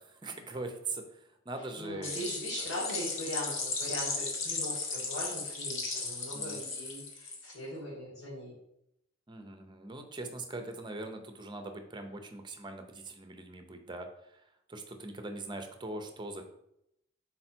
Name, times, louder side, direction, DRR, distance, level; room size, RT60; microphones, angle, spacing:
voice 1, 0.0-2.2 6.3-6.6 9.3-16.4, right 2 dB, 20° right, 6 dB, 0.6 m, -42 dB
voice 2, 1.8-8.5, equal, 80° left, -9 dB, 2.2 m, -40 dB
sound 1, 2.0-7.5, left 4 dB, 60° left, 1.1 m, -36 dB
5.5 x 4.2 x 4.4 m, 0.80 s
head